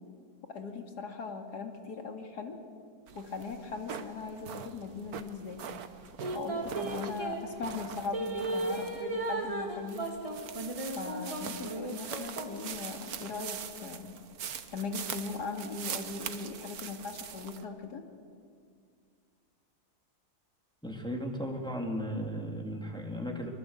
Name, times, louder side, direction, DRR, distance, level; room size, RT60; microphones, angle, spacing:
voice 1, 0.5-2.6 3.1-5.6 6.3-10.2 11.0-14.1 14.7-18.0, left 4 dB, 90° left, 5 dB, 2.7 m, -39 dB
sound 1, 3.1-17.6, right 8 dB, 70° right, 1.5 m, -43 dB
sound 2, 6.2-7.4 8.1-12.6 13.1-13.2, right 2 dB, 20° right, 2.5 m, -35 dB
voice 2, 20.8-23.5, equal, 5° left, 1 dB, 2.9 m, -35 dB
24.0 x 22.0 x 8.1 m, 2.2 s
omnidirectional pair, 1.7 m